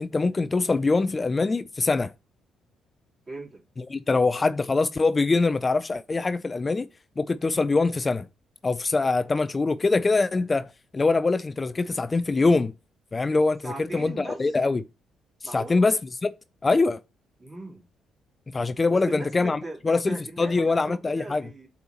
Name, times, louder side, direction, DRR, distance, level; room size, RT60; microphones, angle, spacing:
voice 1, 0.0-2.1 3.8-6.9 7.2-8.3 8.6-12.7 13.1-14.8 15.5-16.3 16.6-17.0 18.5-19.6 19.8-21.5, left 3 dB, 30° left, 0.4 m, -23 dB
voice 2, 3.3-3.6 4.1-4.3 13.6-14.6 15.4-15.8 17.4-17.9 18.9-21.7, right 2 dB, 35° right, 3.3 m, -39 dB
7.9 x 4.3 x 2.9 m
hypercardioid pair, 45°, 0 cm